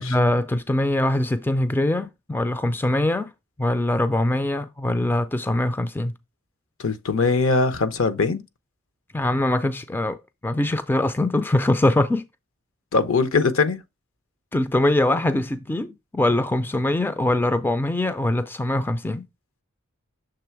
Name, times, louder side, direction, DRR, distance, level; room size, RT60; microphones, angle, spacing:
voice 1, 0.0-3.3 3.6-6.1 9.1-12.2 14.5-15.9 16.1-19.2, left 1 dB, 10° left, 0.3 m, -22 dB
voice 2, 6.8-8.4 12.9-13.8, left 4 dB, 70° left, 0.7 m, -21 dB
6.8 x 3.2 x 4.5 m
head